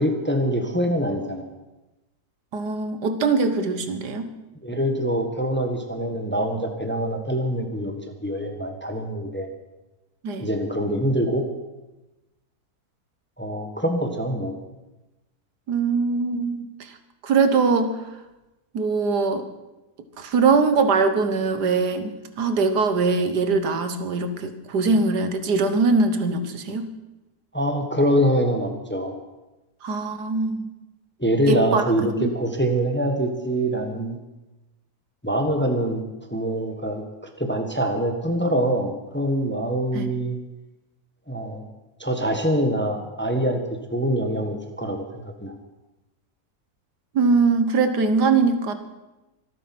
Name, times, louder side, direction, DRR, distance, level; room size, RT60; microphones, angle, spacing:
voice 1, 0.0-1.4 4.6-9.5 10.4-11.4 13.4-14.5 27.5-29.1 31.2-34.2 35.2-36.0 36.3-37.0 37.4-40.4 41.3-41.6 42.0-43.6 43.9-45.5, equal, 5° left, 5 dB, 1.4 m, -24 dB
voice 2, 2.5-4.3 10.2-10.5 15.7-17.0 17.2-17.9 18.7-19.4 20.2-26.9 29.8-30.7 31.5-32.3 39.9-40.1 47.1-48.8, right 4 dB, 90° right, 9 dB, 1.9 m, -22 dB
25.0 x 9.1 x 6.1 m, 1.0 s
omnidirectional pair, 1.7 m